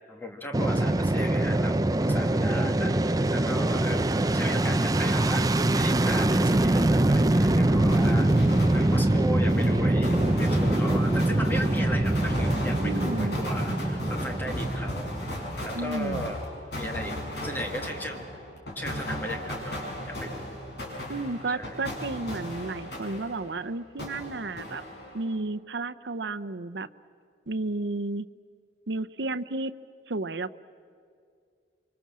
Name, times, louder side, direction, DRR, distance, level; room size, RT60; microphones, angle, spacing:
voice 1, 0.1-5.5 5.7-8.4 8.7-16.4 16.7-17.2 17.4-18.3 18.8-20.5 21.5-21.8, equal, 10° left, 3 dB, 2.0 m, -37 dB
Fixed-wing aircraft airplane, 0.5-15.7, right 1 dB, 20° right, 0.5 m, -24 dB
sound 1, 7.9-23.6 24.0-25.3, equal, 65° left, 7.0 m, -36 dB
voice 2, 12.8-13.5 15.7-16.3 21.1-24.8 25.1-26.9 27.5-28.3 28.9-29.7 30.1-30.6, right 2 dB, 75° right, 12 dB, 0.8 m, -32 dB
27.5 x 25.0 x 7.5 m, 2.3 s
head